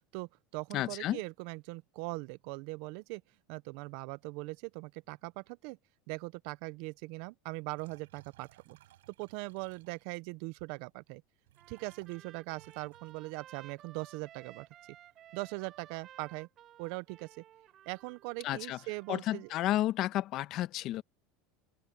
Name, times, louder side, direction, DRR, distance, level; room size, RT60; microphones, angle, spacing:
voice 1, 0.1-3.2 3.5-5.8 6.1-8.8 9.2-11.2 11.7-14.7 15.3-16.5 16.8-17.4 17.9-19.5, right 25 dB, 65° right, 0.7 m, -41 dB
voice 2, 0.7-1.2 18.4-18.8 19.1-21.0, left 14 dB, 50° left, 1.3 m, -32 dB
sound 1, 7.8-10.3 11.1-11.2 11.5-13.9 14.2-14.7 15.0-15.7, right 15 dB, 90° right, 6.9 m, -62 dB
Trumpet, 11.6-19.7, right 12 dB, 40° right, 7.4 m, -56 dB
open air
supercardioid pair, 120°, 0 cm